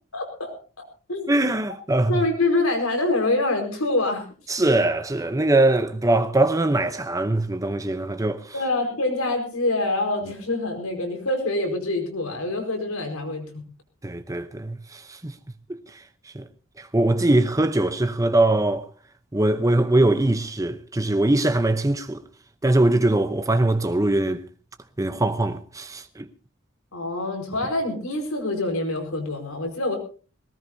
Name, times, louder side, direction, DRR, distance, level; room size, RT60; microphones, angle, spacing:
voice 1, 0.1-0.5 1.1-1.3 2.1-4.3 8.5-13.6 26.9-30.0, left 2 dB, 85° left, 4.8 m, -25 dB
voice 2, 1.3-2.2 4.5-8.4 14.0-15.3 15.7-15.8 16.3-16.4 16.8-18.8 19.3-22.2 22.6-24.4 25.0-26.2, right 2 dB, 15° right, 0.7 m, -22 dB
21.0 x 19.0 x 2.7 m
head